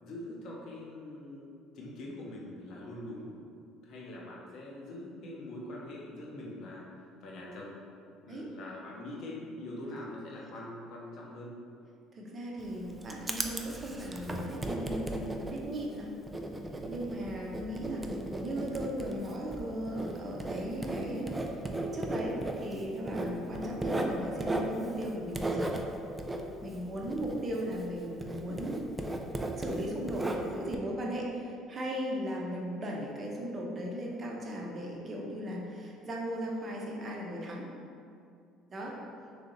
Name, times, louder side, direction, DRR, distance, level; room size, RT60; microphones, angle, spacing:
voice 1, 0.0-1.5 1.7-3.3 3.8-6.9 7.2-7.7 8.2-11.5, left 1 dB, 60° left, -3 dB, 0.8 m, -43 dB
voice 2, 12.1-15.2 15.5-16.1 16.9-21.4 21.9-25.7 26.6-28.8 29.6-37.7 38.7-39.0, equal, 35° right, -2 dB, 0.7 m, -37 dB
Writing, 12.6-27.9 28.2-30.8, right 2 dB, 15° right, 0.3 m, -36 dB
3.3 x 2.8 x 3.9 m, 2.4 s
cardioid pair, 105°, 0 cm